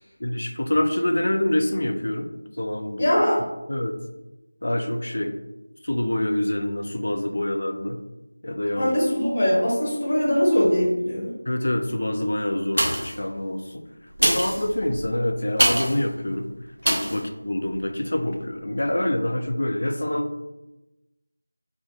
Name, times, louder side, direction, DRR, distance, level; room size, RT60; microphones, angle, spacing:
voice 1, 0.2-3.1 3.7-4.0 4.6-5.3 5.8-8.0 8.4-8.9 11.5-13.8 14.2-16.5 16.8-20.3, left 1 dB, 60° left, 6 dB, 0.4 m, -26 dB
voice 2, 3.0-3.4 8.7-11.3, equal, 35° left, -5 dB, 0.7 m, -21 dB
sound 1, 12.7-13.3 14.1-16.0 16.8-17.2 17.7-17.8, equal, 90° right, 0.9 m, -24 dB
3.2 x 2.6 x 2.7 m, 1.0 s
figure-of-eight pair, 170°, 0 cm